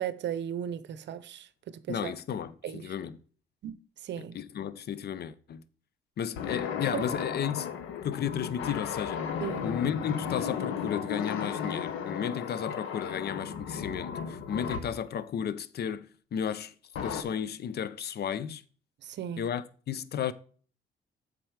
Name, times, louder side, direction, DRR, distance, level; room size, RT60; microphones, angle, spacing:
voice 1, 0.0-2.1 2.6-2.9 3.6-4.4 6.9-7.0 9.4-9.7 19.0-19.5, right 9 dB, 65° right, 0.7 m, -36 dB
voice 2, 1.9-3.2 4.3-5.6 6.2-7.7 8.0-9.2 9.6-16.7 17.0-18.6 19.4-20.3, left 8 dB, 55° left, 0.7 m, -33 dB
sound 1, 6.4-15.0 17.0-17.2, left 7 dB, 85° left, 0.9 m, -35 dB
7.8 x 5.2 x 4.7 m
cardioid pair, 90°, 20 cm